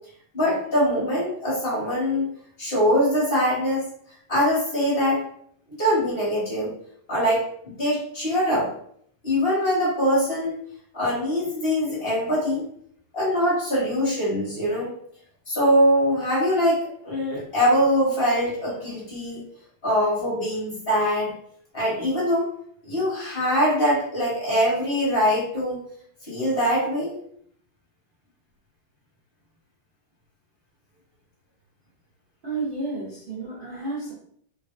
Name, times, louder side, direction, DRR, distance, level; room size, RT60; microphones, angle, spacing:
voice 1, 0.3-2.3 2.6-3.9 4.3-5.2 5.8-6.7 7.1-8.7 9.2-10.6 10.9-12.6 13.1-14.9 15.5-19.4 19.8-21.3 21.7-22.5 22.8-25.8 26.3-27.2, equal, 30° left, -8 dB, 1.7 m, -23 dB
voice 2, 32.4-34.1, right 3 dB, 65° right, -7 dB, 0.5 m, -31 dB
3.7 x 3.3 x 2.6 m, 0.64 s
omnidirectional pair, 2.3 m